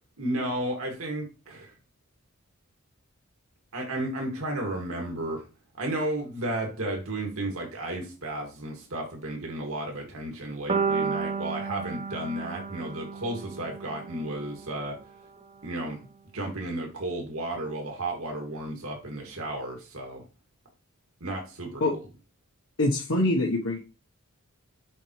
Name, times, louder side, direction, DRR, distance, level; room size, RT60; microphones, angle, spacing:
voice 1, 0.2-1.7 3.7-5.4 5.8-15.0 15.6-16.0 16.3-20.2 21.2-21.8, right 1 dB, 80° right, 1 dB, 2.1 m, -33 dB
sound 1, 10.7-14.8, right 5 dB, 30° right, 0.6 m, -32 dB
voice 2, 22.8-23.8, left 2 dB, 70° left, -2 dB, 1.1 m, -24 dB
7.4 x 5.1 x 3.2 m, 0.32 s
head